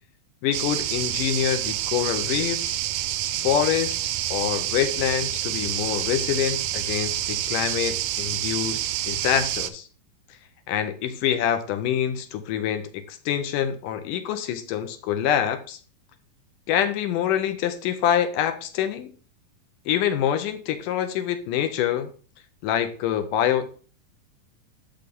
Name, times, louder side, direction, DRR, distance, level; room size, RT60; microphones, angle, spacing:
voice 1, 0.4-2.8 3.4-4.0 4.3-9.9 10.7-15.8 16.7-19.1 19.9-22.1 22.6-23.6, left 10 dB, 80° left, 9 dB, 2.3 m, -25 dB
sound 1, 0.5-9.7, right 13 dB, 80° right, 1.7 m, -28 dB
6.8 x 6.3 x 3.6 m, 0.40 s
omnidirectional pair, 3.9 m